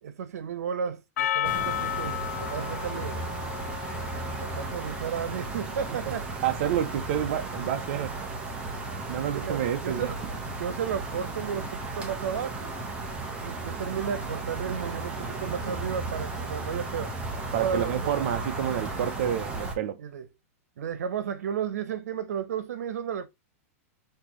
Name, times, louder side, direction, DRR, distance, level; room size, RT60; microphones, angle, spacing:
voice 1, 0.0-3.3 4.4-6.3 9.3-10.2 10.6-12.7 13.4-17.1 17.5-18.1 20.0-20.3 20.8-23.3, right 7 dB, 85° right, 0.9 m, -33 dB
Percussion, 1.2-5.8, left 13 dB, 90° left, 0.3 m, -33 dB
sound 1, 1.4-19.7, right 3 dB, 10° right, 0.8 m, -35 dB
voice 2, 6.4-8.2 9.1-10.1 17.5-20.0, right 10 dB, 45° right, 0.7 m, -29 dB
5.8 x 2.9 x 3.0 m
supercardioid pair, 170°, 8 cm